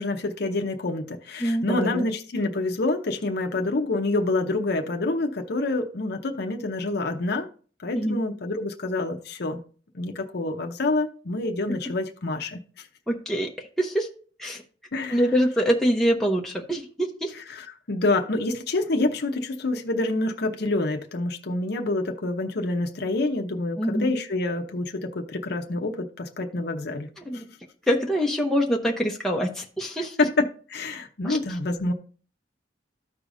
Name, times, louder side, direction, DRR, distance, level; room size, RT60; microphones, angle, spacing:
voice 1, 0.0-7.5 7.8-9.6 9.9-12.6 14.9-15.3 17.3-27.1 27.3-27.4 30.2-31.9, left 2 dB, 60° left, 0.8 m, -27 dB
voice 2, 1.4-2.1 7.9-8.3 13.1-13.5 13.8-14.1 14.4-14.6 15.1-17.3 23.8-24.1 27.2-27.5 27.9-30.1 31.2-31.4, equal, ahead, 0.8 m, -24 dB
13.5 x 4.8 x 2.6 m
head